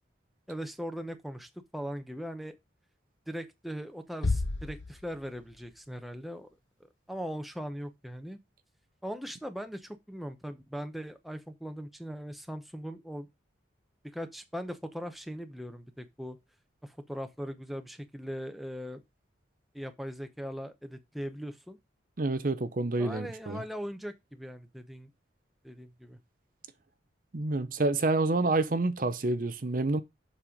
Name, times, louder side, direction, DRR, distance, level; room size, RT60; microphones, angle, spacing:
voice 1, 0.5-2.5 3.3-6.5 7.1-8.4 9.0-13.3 14.1-16.4 16.8-19.0 19.7-21.8 23.0-25.1 25.6-26.2, equal, ahead, 0.8 m, -40 dB
sound 1, 4.2-6.2, left 3 dB, 75° left, 1.0 m, -33 dB
voice 2, 22.2-23.6 27.3-30.0, right 2 dB, 45° right, 0.6 m, -28 dB
7.3 x 5.5 x 5.0 m
head